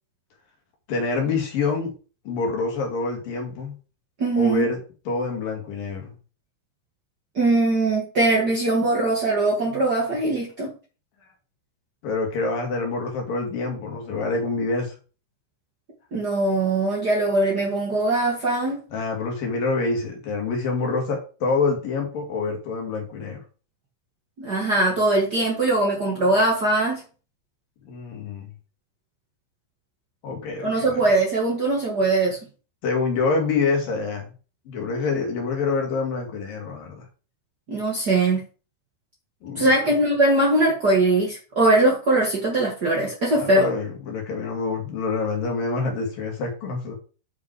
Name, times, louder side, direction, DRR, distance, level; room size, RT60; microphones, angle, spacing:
voice 1, 0.9-1.9 2.3-3.7 4.4-4.8 5.1-6.2 12.0-14.9 18.9-23.4 27.9-28.5 30.2-31.0 32.8-34.3 34.7-37.1 39.4-39.8 43.4-47.0, left 4 dB, 55° left, 3.6 m, -26 dB
voice 2, 4.2-4.7 7.3-10.7 16.1-18.8 24.4-27.0 30.6-32.4 37.7-38.4 39.5-43.7, right 2 dB, 65° right, 0.9 m, -21 dB
9.4 x 5.6 x 4.7 m
omnidirectional pair, 5.5 m